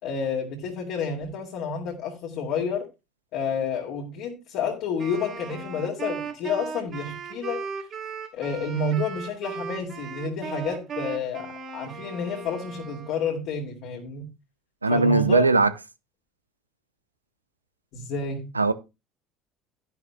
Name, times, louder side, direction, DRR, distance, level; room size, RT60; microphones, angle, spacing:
voice 1, 0.0-2.9 3.3-7.9 8.3-14.3 14.9-15.5 17.9-18.5, left 4 dB, 55° left, 2.1 m, -30 dB
Wind instrument woodwind instrument, 5.0-13.4, right 6 dB, 40° right, 3.3 m, -37 dB
voice 2, 14.8-15.7 18.6-18.7, right 3 dB, 85° right, 0.6 m, -19 dB
13.0 x 10.5 x 2.2 m
figure-of-eight pair, 60°, 0 cm